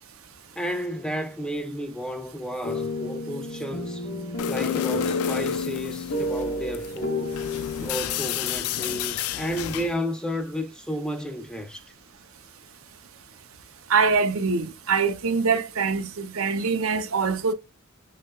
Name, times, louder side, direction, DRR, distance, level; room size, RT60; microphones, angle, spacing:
voice 1, 0.6-4.1 4.5-7.4 7.8-11.8, equal, 5° left, 0.4 m, -32 dB
sound 1, 2.6-9.6, left 3 dB, 60° left, 0.7 m, -31 dB
sound 2, 4.4-10.0, left 11 dB, 90° left, 0.3 m, -32 dB
voice 2, 13.9-17.5, right 5 dB, 75° right, 0.5 m, -24 dB
6.3 x 2.1 x 2.2 m
head